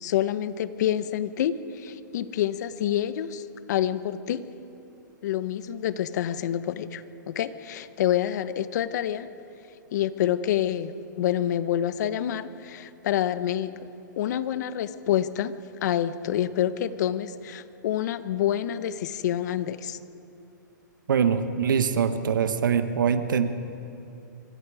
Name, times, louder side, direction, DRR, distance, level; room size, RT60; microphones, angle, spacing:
voice 1, 0.0-4.4 5.2-9.3 9.9-13.8 14.2-15.6 15.8-20.0, left 11 dB, 60° left, 13 dB, 1.2 m, -27 dB
voice 2, 21.1-23.5, right 7 dB, 80° right, 8 dB, 1.4 m, -23 dB
26.0 x 23.5 x 5.0 m, 2.7 s
hypercardioid pair, 135°, 10 cm